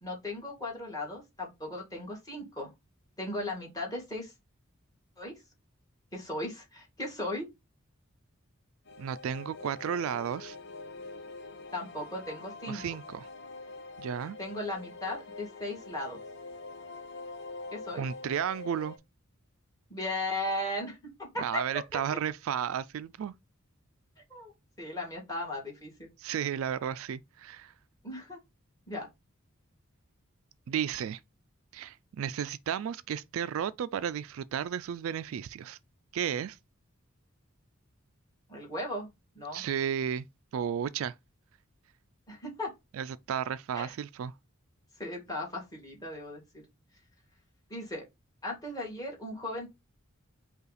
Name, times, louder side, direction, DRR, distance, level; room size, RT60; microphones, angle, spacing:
voice 1, 0.0-2.7 3.2-4.3 5.2-5.3 6.1-7.5 11.7-12.8 14.4-16.2 17.7-18.0 19.9-21.6 21.9-22.2 24.3-24.5 24.8-26.1 28.0-28.4 28.9-29.1 38.5-39.1 39.4-39.6 42.3-42.7 43.7-43.9 45.0-46.6 47.7-48.0 48.4-49.7, left 1 dB, 15° left, 1.9 m, -37 dB
sound 1, 8.9-19.0, left 3 dB, 55° left, 0.7 m, -45 dB
voice 2, 9.0-10.6 12.7-13.3 14.0-14.4 18.0-19.0 21.4-23.4 26.2-27.7 30.7-31.2 31.7-35.8 36.1-36.6 39.5-40.3 40.5-41.1 43.0-44.3, right 8 dB, 75° right, 0.3 m, -33 dB
5.4 x 2.4 x 4.0 m
head